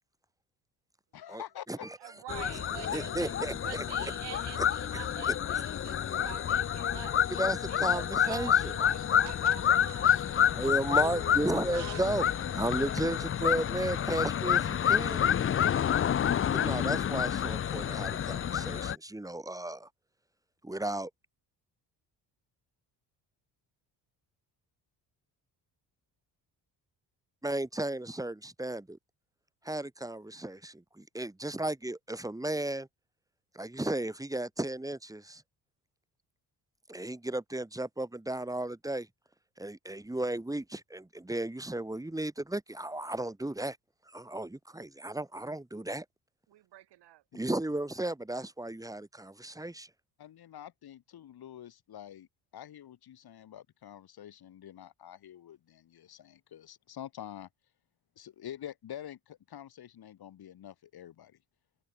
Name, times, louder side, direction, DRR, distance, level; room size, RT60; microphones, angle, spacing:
voice 1, 1.1-1.9 47.3-47.4 50.2-52.3 52.5-57.5 58.2-61.4, left 10 dB, 65° left, 4.0 m, -47 dB
voice 2, 2.0-3.3 3.6-7.2 7.7-12.2 12.9-13.0 13.8-14.1 46.5-47.2, right 14 dB, 80° right, 3.7 m, -47 dB
sound 1, 2.3-18.9, left 9 dB, 30° left, 0.5 m, -29 dB
voice 3, 2.9-3.8 7.3-8.7 10.5-12.2 12.5-15.3 16.5-19.9 20.6-21.1 27.4-29.0 29.6-32.9 33.5-35.4 36.9-39.1 39.6-43.8 44.1-46.1 47.3-49.9, right 1 dB, 10° right, 1.9 m, -34 dB
cardioid pair, 85°, 41 cm